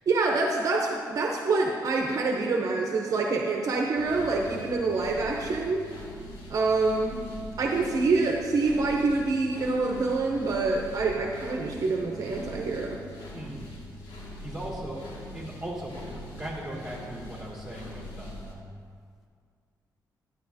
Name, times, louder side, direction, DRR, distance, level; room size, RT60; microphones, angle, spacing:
voice 1, 0.1-5.9 6.5-7.2 7.6-13.0, right 3 dB, 55° right, 0 dB, 0.7 m, -26 dB
sound 1, 4.0-18.5, left 1 dB, 80° left, 2.0 m, -43 dB
voice 2, 13.3-13.8 14.1-18.6, right 1 dB, 5° right, -5 dB, 2.1 m, -39 dB
11.5 x 9.4 x 2.7 m, 2.1 s
wide cardioid pair, 150°, 7 cm